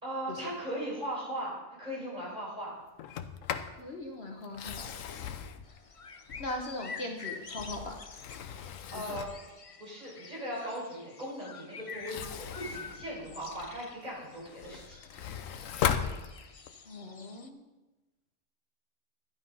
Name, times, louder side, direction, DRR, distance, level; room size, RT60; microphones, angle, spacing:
voice 1, 0.0-2.7 8.9-9.3 9.8-15.0, right 1 dB, 30° right, -5 dB, 5.2 m, -38 dB
Sliding door, 3.0-3.8 4.4-6.8 7.3-9.5 11.9-13.8 14.3-16.8, left 8 dB, 75° left, 1.1 m, -37 dB
voice 2, 3.8-4.8 6.4-7.9 8.9-9.2 16.9-17.6, left 2 dB, 50° left, 1 dB, 1.4 m, -39 dB
sound 1, 5.6-17.5, left 5 dB, 35° left, 0.6 m, -48 dB
11.5 x 10.0 x 5.5 m, 1.1 s
omnidirectional pair, 1.4 m